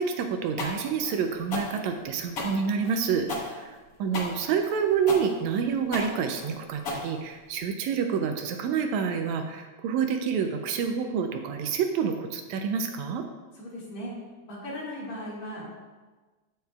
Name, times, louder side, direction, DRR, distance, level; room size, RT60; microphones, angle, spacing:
voice 1, 0.0-3.7 4.0-13.2, right 6 dB, 80° right, 6 dB, 1.8 m, -28 dB
sound 1, 0.6-7.6, left 2 dB, 85° left, 0.7 m, -34 dB
voice 2, 13.5-14.1 14.5-15.7, equal, 70° left, -6 dB, 3.2 m, -37 dB
14.5 x 4.8 x 2.3 m, 1.3 s
omnidirectional pair, 3.3 m